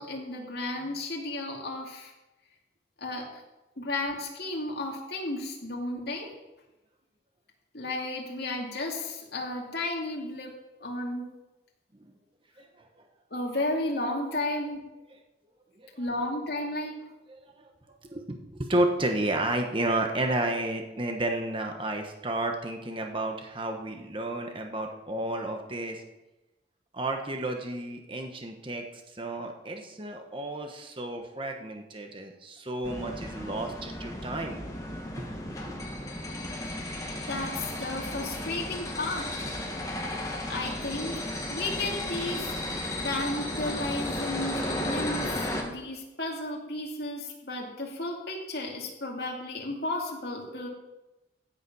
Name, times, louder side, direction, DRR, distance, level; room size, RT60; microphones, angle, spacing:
voice 1, 0.0-2.1 3.0-3.3 3.8-6.3 7.7-10.5 10.8-11.2 13.3-14.8 16.0-16.9 37.3-39.3 40.5-41.2 41.5-42.5 43.0-50.7, left 2 dB, 60° left, -1 dB, 2.6 m, -33 dB
voice 2, 18.1-26.0 26.9-28.8 29.2-34.6 35.2-36.0, right 1 dB, 30° right, 4 dB, 1.2 m, -31 dB
sound 1, 32.8-45.6, left 1 dB, 20° left, 1.8 m, -34 dB
15.5 x 7.3 x 5.5 m, 1.0 s
head